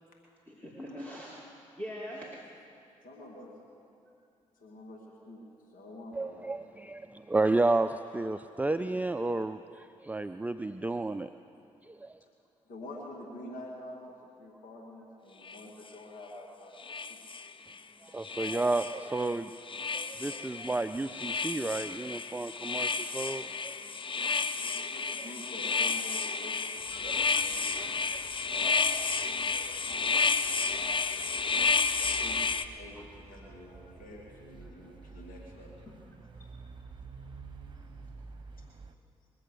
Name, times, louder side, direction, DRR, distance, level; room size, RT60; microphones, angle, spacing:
voice 1, 0.5-1.4 1.8-2.3 8.2-8.3 14.9-15.0 26.9-27.0 32.9-33.1 35.9-36.0, equal, 10° left, -6 dB, 2.8 m, -42 dB
voice 2, 3.0-3.5 4.6-6.4 12.7-17.2 24.6-27.7 28.5-28.9 29.2-31.7 32.2-35.7, left 1 dB, 65° left, -2 dB, 2.4 m, -47 dB
voice 3, 6.1-11.3 11.9-12.2 18.0-19.5 19.9-23.8 24.2-24.5 27.7-28.2, right 2 dB, 10° right, 10 dB, 0.5 m, -32 dB
sound 1, 15.4-15.6 16.8-17.8 18.2-19.4 19.7-32.6, left 4 dB, 35° left, 0.7 m, -31 dB
sound 2, 26.8-39.0, right 4 dB, 30° right, 1.3 m, -51 dB
22.0 x 7.7 x 6.7 m, 2.5 s
hypercardioid pair, 40°, 15 cm